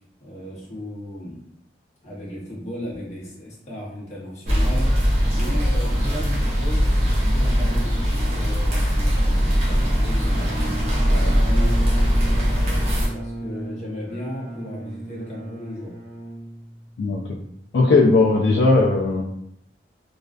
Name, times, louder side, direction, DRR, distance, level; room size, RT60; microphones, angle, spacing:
voice 1, 0.2-1.4 2.0-4.9 5.3-11.8 12.2-15.9, left 1 dB, 40° left, -5 dB, 0.7 m, -35 dB
sound 1, 4.5-13.1, equal, 35° right, 0.5 m, -20 dB
Bowed string instrument, 8.7-17.1, right 2 dB, 75° right, 0.9 m, -36 dB
voice 2, 17.7-19.2, left 3 dB, 70° left, -1 dB, 0.3 m, -17 dB
2.4 x 2.2 x 2.2 m, 0.73 s
head